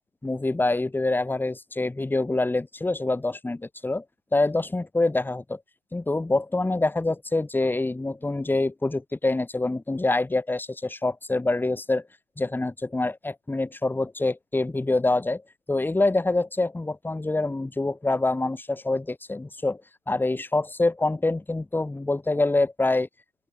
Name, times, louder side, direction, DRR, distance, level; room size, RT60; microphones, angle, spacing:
voice 1, 0.2-4.0 4.3-5.6 5.9-12.0 12.4-15.4 15.7-19.8 20.1-23.1, left 2 dB, 5° left, 3.2 m, -25 dB
open air
hypercardioid pair, 110°, 39 cm